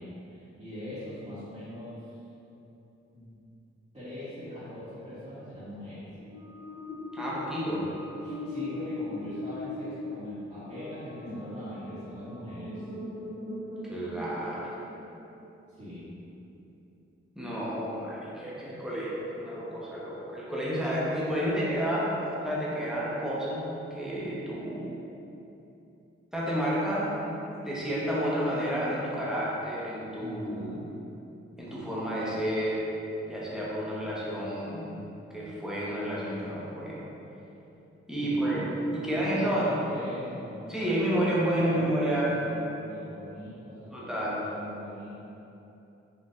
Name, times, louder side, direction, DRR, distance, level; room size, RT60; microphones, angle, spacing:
voice 1, 0.0-2.2 3.1-3.3 3.9-6.0 8.2-12.9 15.7-16.2 30.2-30.9 38.2-40.9 41.5-45.3, equal, 20° right, -14 dB, 1.2 m, -41 dB
sound 1, 6.2-15.5, left 2 dB, 45° left, 1.1 m, -40 dB
voice 2, 7.1-7.9 13.8-14.8 17.3-22.1 22.4-24.9 26.3-27.1 27.5-30.7 31.6-32.9 33.2-35.0 35.3-37.0 38.1-38.6 38.9-39.7 40.7-42.3 43.9-44.4, equal, ahead, -7 dB, 0.9 m, -30 dB
3.8 x 2.6 x 2.5 m, 2.9 s
cardioid pair, 50°, 29 cm